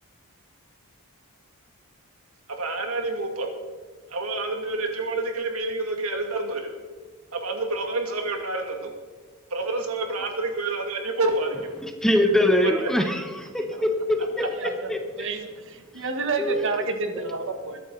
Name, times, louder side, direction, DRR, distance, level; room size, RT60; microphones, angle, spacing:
voice 1, 2.5-3.5 4.1-6.7 7.3-8.9 9.5-11.6 12.6-12.9 14.4-14.5, right 2 dB, 75° right, 3 dB, 2.3 m, -28 dB
voice 2, 12.0-15.0 15.9-16.0 16.4-16.6, left 1 dB, ahead, 4 dB, 1.1 m, -23 dB
voice 3, 14.6-14.9 15.2-17.8, right 3 dB, 60° right, 6 dB, 1.6 m, -30 dB
21.5 x 10.5 x 4.1 m, 1.5 s
head